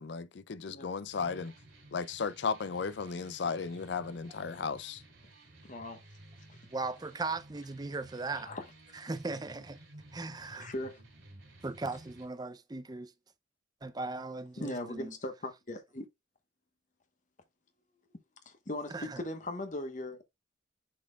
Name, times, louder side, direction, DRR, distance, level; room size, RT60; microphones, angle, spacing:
voice 1, 0.0-1.5 1.9-5.0, left 5 dB, 60° left, 0.5 m, -35 dB
sound 1, 1.1-12.3, right 1 dB, 80° right, 3.2 m, -55 dB
voice 2, 5.7-6.0 8.4-8.6 10.6-11.0 14.6-16.1 18.5-20.2, left 1 dB, 40° left, 1.1 m, -39 dB
voice 3, 6.7-8.5 9.0-9.8 10.1-10.7 11.6-13.1 13.8-15.1 18.9-19.2, right 3 dB, 20° right, 0.5 m, -38 dB
10.5 x 4.1 x 2.3 m
head